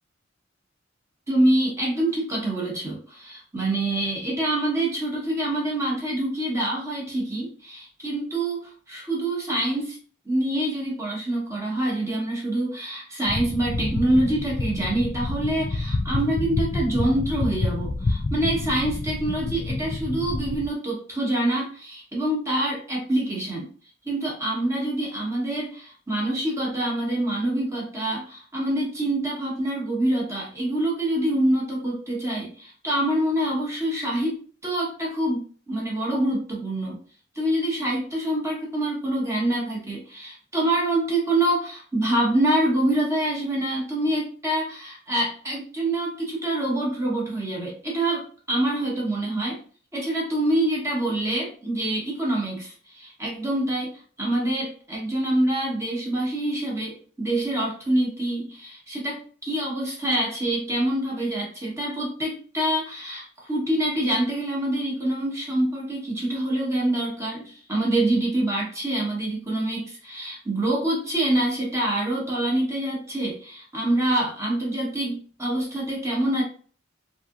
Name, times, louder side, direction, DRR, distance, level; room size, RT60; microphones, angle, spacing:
voice 1, 1.3-8.6 8.9-10.0 10.2-23.7 24.0-37.0 37.3-49.6 49.9-53.9 54.2-76.4, right 1 dB, 15° right, -3 dB, 1.0 m, -26 dB
sound 1, 13.3-20.7, left 2 dB, 30° left, 0.4 m, -28 dB
3.3 x 2.8 x 2.4 m, 0.44 s
head